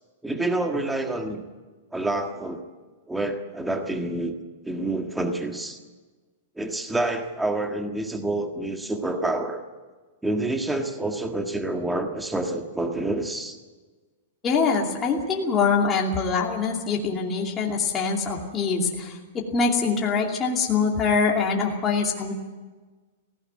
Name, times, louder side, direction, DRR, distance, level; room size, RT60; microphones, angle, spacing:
voice 1, 0.2-1.4 1.9-2.6 3.1-4.3 4.6-5.8 6.6-9.6 10.2-13.6, right 2 dB, 5° right, 5 dB, 1.6 m, -28 dB
voice 2, 14.4-19.2 19.5-22.3, left 5 dB, 20° left, -2 dB, 2.6 m, -24 dB
18.5 x 16.0 x 9.6 m, 1.3 s
hypercardioid pair, 155°, 0 cm